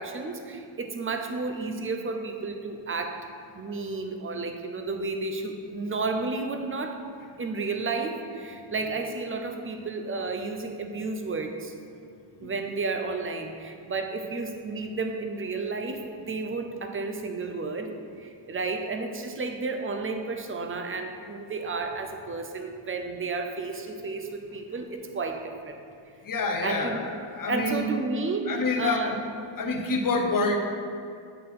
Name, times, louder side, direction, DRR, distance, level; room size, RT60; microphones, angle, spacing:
voice 1, 0.0-3.3 3.5-7.0 7.4-11.7 12.4-25.8 26.6-27.1 27.5-29.2, right 3 dB, 30° right, 4 dB, 0.5 m, -32 dB
voice 2, 26.2-28.0 28.5-29.0 29.6-30.6, left 3 dB, 45° left, 3 dB, 0.7 m, -27 dB
8.7 x 4.1 x 3.7 m, 2.3 s
wide cardioid pair, 140°, 48 cm